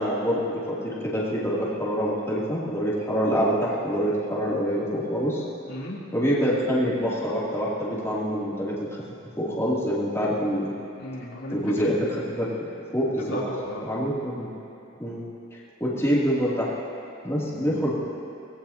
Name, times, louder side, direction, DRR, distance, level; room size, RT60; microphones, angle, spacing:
voice 1, 0.0-5.4 6.1-8.7 9.4-10.7 11.5-12.5 12.9-13.4 13.8-14.5 15.0-15.2 15.8-16.7 17.2-17.9, equal, 15° left, -8 dB, 3.0 m, -25 dB
voice 2, 5.7-6.0 11.0-11.9 13.3-13.9 17.5-17.8, left 1 dB, 85° left, -6 dB, 3.4 m, -35 dB
24.0 x 19.0 x 2.9 m, 2.7 s
head